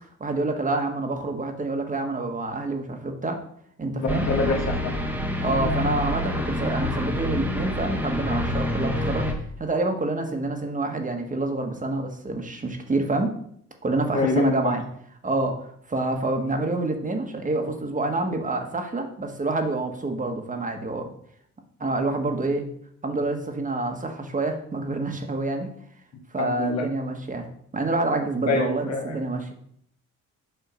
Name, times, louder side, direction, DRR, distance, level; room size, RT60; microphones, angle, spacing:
voice 1, 0.2-3.4 3.8-4.3 5.4-9.3 9.6-13.3 13.8-14.8 15.2-21.1 21.8-22.7 23.0-25.7 26.3-27.5 27.7-29.5, right 2 dB, 25° right, 4 dB, 1.4 m, -27 dB
voice 2, 3.9-5.0 5.5-5.6 14.1-14.7 26.4-26.9 28.5-29.2, left 3 dB, 60° left, 1 dB, 1.8 m, -26 dB
sound 1, 4.1-9.3, left 1 dB, 5° right, 1.3 m, -27 dB
6.8 x 3.7 x 6.3 m, 0.66 s
cardioid pair, 90°, 30 cm